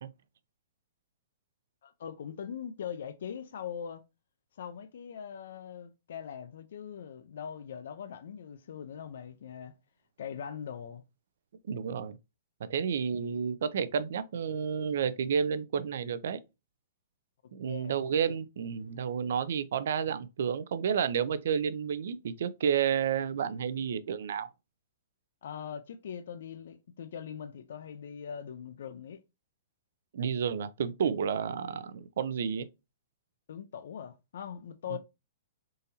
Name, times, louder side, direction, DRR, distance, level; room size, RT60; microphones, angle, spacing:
voice 1, 1.8-4.0 4.6-9.7 10.2-11.0 17.7-17.9 25.4-29.2 33.5-35.0, left 8 dB, 70° left, 0.4 m, -41 dB
voice 2, 11.7-12.2 12.6-16.4 17.5-24.5 30.1-32.7 34.9-35.0, right 7 dB, 70° right, 0.4 m, -31 dB
3.7 x 2.7 x 2.7 m
hypercardioid pair, 155°, 0 cm